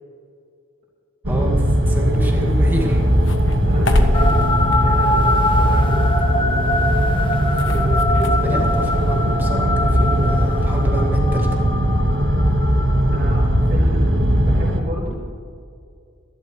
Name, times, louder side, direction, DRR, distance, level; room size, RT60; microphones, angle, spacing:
sound 1, 1.2-14.8, equal, 70° right, 1.6 m, -18 dB
voice 1, 1.3-3.0 7.5-11.5, right 1 dB, 10° right, -1 dB, 2.2 m, -27 dB
sound 2, 2.0-8.3, left 1 dB, 70° left, 1.4 m, -27 dB
voice 2, 3.7-4.4 4.8-6.1 13.1-15.2, right 1 dB, 50° right, -8 dB, 3.6 m, -31 dB
sound 3, 4.1-13.6, left 2 dB, 25° left, 1.1 m, -24 dB
25.0 x 12.0 x 3.2 m, 2.3 s
head